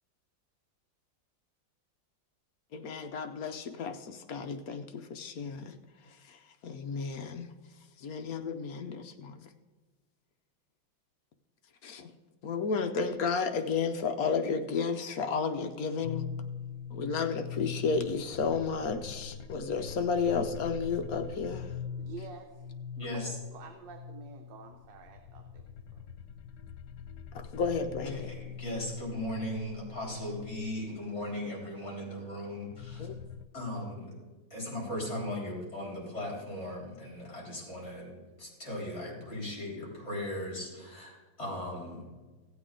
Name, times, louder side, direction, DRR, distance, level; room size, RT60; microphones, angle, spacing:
voice 1, 2.7-5.8 6.0-7.5 8.0-9.5 11.8-12.1 12.4-16.3 16.9-21.7 27.3-28.4 33.0-33.2, left 5 dB, 65° left, 7 dB, 0.9 m, -32 dB
sound 1, 16.0-30.8 31.2-33.4, left 7 dB, 90° left, 1.4 m, -42 dB
voice 2, 22.0-22.7 23.1-25.6 25.9-26.0, right 6 dB, 75° right, 3 dB, 1.6 m, -48 dB
voice 3, 23.0-23.3 28.1-33.1 33.5-34.2 34.5-38.1 38.4-42.0, left 1 dB, 35° left, -3 dB, 4.1 m, -38 dB
16.0 x 8.4 x 3.7 m, 1.3 s
omnidirectional pair, 2.0 m